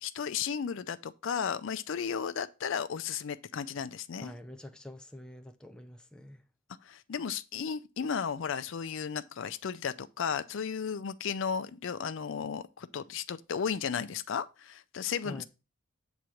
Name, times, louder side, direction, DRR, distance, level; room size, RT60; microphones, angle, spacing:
voice 1, 0.0-4.3 6.8-15.4, left 7 dB, 60° left, 0.4 m, -34 dB
voice 2, 4.2-6.4 15.2-15.4, left 1 dB, 5° left, 0.5 m, -46 dB
8.1 x 3.0 x 6.2 m
head